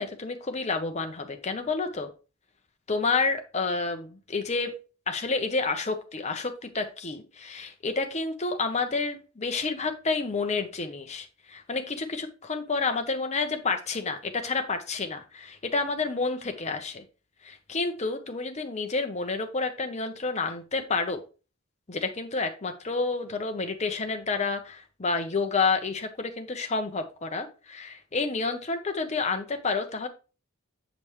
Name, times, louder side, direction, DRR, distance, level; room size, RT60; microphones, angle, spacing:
voice 1, 0.0-2.1 2.9-4.7 5.1-17.0 17.4-21.2 21.9-30.1, left 4 dB, 30° left, 6 dB, 0.8 m, -29 dB
7.1 x 5.1 x 3.1 m, 0.33 s
head